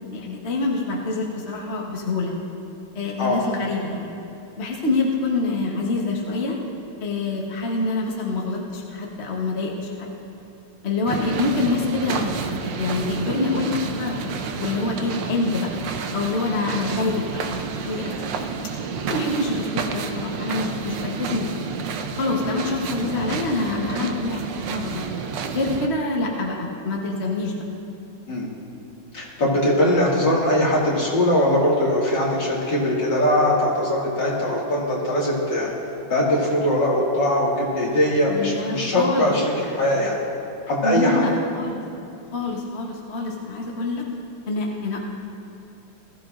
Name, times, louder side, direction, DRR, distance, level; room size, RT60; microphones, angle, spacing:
voice 1, 0.1-2.3 2.9-4.1 4.6-6.6 7.0-10.2 10.8-12.3 12.8-15.7 16.1-18.1 19.1-21.6 22.1-25.0 25.5-27.6 38.3-39.3 40.8-41.8 42.3-44.0 44.5-45.0, left 3 dB, 40° left, -2 dB, 1.1 m, -26 dB
sound 1, 11.1-25.9, right 5 dB, 65° right, 1.3 m, -30 dB
voice 2, 29.1-35.7 36.1-40.2 40.7-41.2, left 1 dB, 55° left, -5 dB, 2.9 m, -21 dB
20.0 x 14.5 x 2.6 m, 2.7 s
omnidirectional pair, 2.4 m